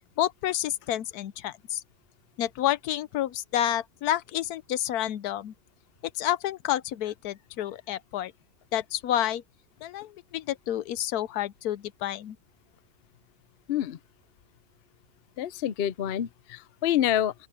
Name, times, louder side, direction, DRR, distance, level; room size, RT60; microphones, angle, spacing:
voice 1, 0.2-1.8 2.4-5.5 6.1-8.3 8.7-9.4 9.8-12.4, left 12 dB, 80° left, 1.1 m, -29 dB
voice 2, 15.4-17.3, left 11 dB, 60° left, 0.6 m, -27 dB
open air
omnidirectional pair, 1.6 m